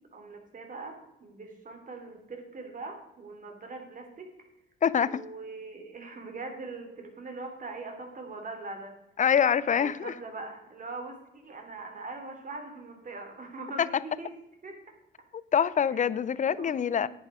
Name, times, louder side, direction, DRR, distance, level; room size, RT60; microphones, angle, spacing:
voice 1, 0.1-4.3 5.0-9.0 9.8-14.3 14.6-14.8 16.6-17.1, right 3 dB, 40° right, 3.1 m, -42 dB
voice 2, 4.8-5.2 9.2-10.1 15.5-17.1, left 8 dB, 40° left, 0.6 m, -25 dB
10.0 x 9.1 x 5.0 m
cardioid pair, 90°, 20 cm